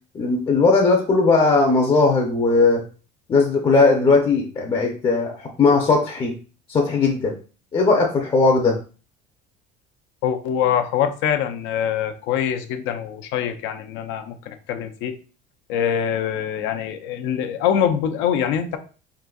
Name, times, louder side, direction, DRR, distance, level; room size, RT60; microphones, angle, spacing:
voice 1, 0.1-2.8 3.3-6.3 6.7-7.3 7.7-8.8, left 3 dB, 25° left, 1 dB, 0.6 m, -18 dB
voice 2, 10.2-15.2 15.7-18.8, left 9 dB, 75° left, 7 dB, 0.5 m, -24 dB
3.8 x 2.6 x 2.3 m, 0.36 s
cardioid pair, 120°, 19 cm